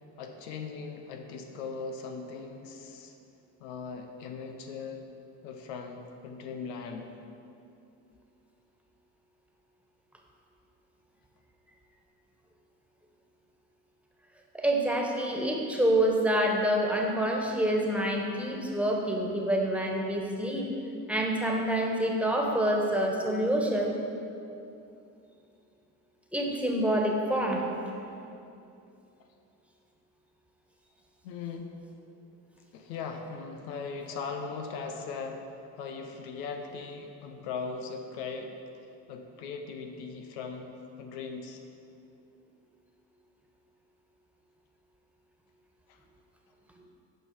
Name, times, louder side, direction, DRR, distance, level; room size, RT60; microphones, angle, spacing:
voice 1, 0.2-3.1 3.6-5.1 5.4-7.1 31.2-31.7 32.7-38.5 39.1-41.6 45.9-46.0, left 5 dB, 80° left, 4 dB, 0.8 m, -39 dB
voice 2, 14.5-20.7 21.1-23.9 26.3-27.6, right 1 dB, 5° right, 0 dB, 1.5 m, -27 dB
8.9 x 5.6 x 4.8 m, 2.7 s
hypercardioid pair, 55°, 49 cm